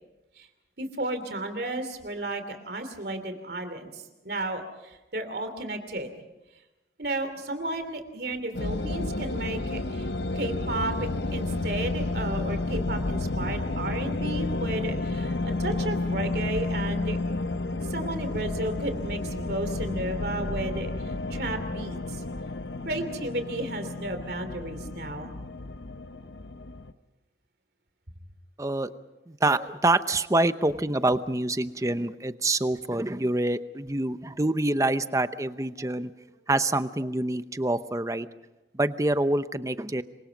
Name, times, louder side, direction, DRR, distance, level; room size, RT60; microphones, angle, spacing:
voice 1, 0.8-6.1 7.0-10.1 10.3-17.2 17.8-22.2 22.8-25.3, right 2 dB, 60° right, 8 dB, 3.0 m, -33 dB
sound 1, 8.5-26.9, left 2 dB, 80° left, 1.0 m, -31 dB
voice 2, 28.6-28.9 29.3-36.1 36.5-38.3 38.7-40.0, right 2 dB, 20° right, 12 dB, 0.8 m, -26 dB
27.0 x 23.5 x 5.2 m, 1.0 s
head